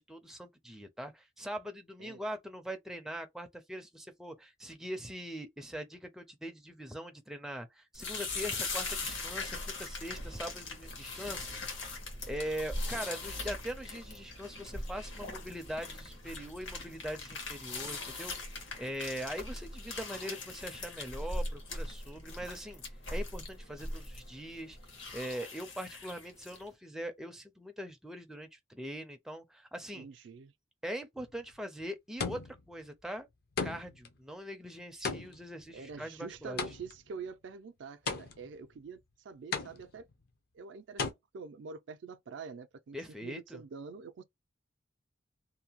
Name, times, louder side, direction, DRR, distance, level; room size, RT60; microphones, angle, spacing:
voice 1, 0.0-11.7 12.3-22.8 23.1-24.8 25.1-30.1 30.8-33.3 33.6-36.6 42.9-43.6, equal, 5° right, 0.4 m, -42 dB
sound 1, 7.9-26.7, left 2 dB, 75° left, 1.2 m, -40 dB
voice 2, 29.9-30.5 35.7-40.1 40.5-43.0 43.2-44.2, right 5 dB, 70° right, 0.4 m, -46 dB
sound 2, 31.2-31.6 32.2-32.7 33.6-34.1 35.0-37.1 38.1-38.6 39.5-40.1 41.0-41.1, left 4 dB, 55° left, 0.5 m, -36 dB
2.7 x 2.1 x 2.8 m
head